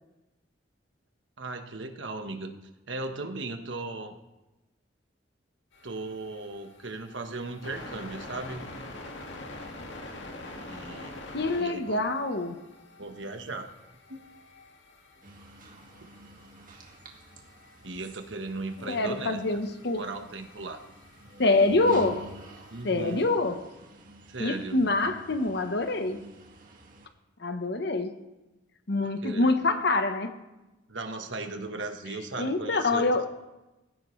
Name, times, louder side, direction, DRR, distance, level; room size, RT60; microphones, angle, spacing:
voice 1, 1.4-2.6 2.9-4.1 5.8-8.7 10.6-11.1 11.6-12.1 13.0-13.7 14.1-14.2 17.8-19.4 20.0-20.8 22.7-23.3 24.3-24.8 29.2-29.5 30.9-33.0, right 3 dB, 90° right, 5 dB, 1.3 m, -37 dB
sound 1, 5.7-23.3, left 2 dB, 80° left, 1.9 m, -47 dB
voice 2, 11.3-12.6 18.9-20.1 21.4-22.3 22.8-23.7 24.4-26.2 27.4-28.1 28.9-30.4 32.4-33.3, left 2 dB, 65° left, 8 dB, 1.1 m, -26 dB
sound 2, 15.2-27.1, right 1 dB, 50° right, 1.9 m, -48 dB
18.0 x 15.5 x 3.2 m, 1.0 s
head